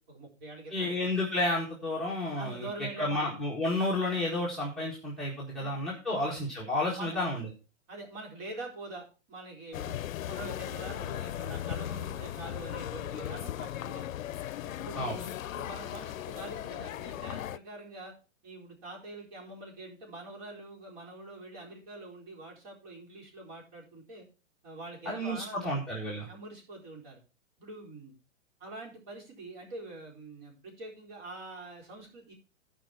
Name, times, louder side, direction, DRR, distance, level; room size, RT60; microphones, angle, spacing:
voice 1, 0.0-1.1 2.4-3.2 5.6-5.7 6.1-6.2 7.0-7.2 7.9-9.9 10.2-14.1 14.6-18.1 18.4-24.3 24.6-25.7 26.3-27.2 27.6-28.1 28.6-32.3, right 2 dB, 35° right, -2 dB, 4.3 m, -45 dB
voice 2, 0.7-2.7 3.0-7.5 14.9-15.2 25.0-26.3, left 1 dB, ahead, -7 dB, 1.6 m, -31 dB
sound 1, 9.7-17.6, left 12 dB, 75° left, 0.6 m, -37 dB
15.0 x 5.2 x 4.2 m, 0.34 s
hypercardioid pair, 150°, 40 cm